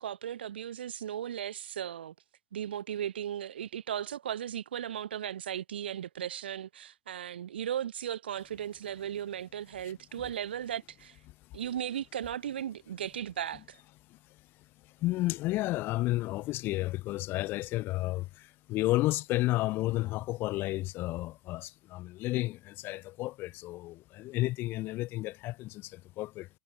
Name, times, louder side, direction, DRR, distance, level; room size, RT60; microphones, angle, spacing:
voice 1, 0.0-2.1 2.5-11.2 11.5-13.8, right 10 dB, 90° right, 2.1 m, -36 dB
voice 2, 15.0-26.5, left 18 dB, 40° left, 7.0 m, -32 dB
hypercardioid pair, 130°, 5 cm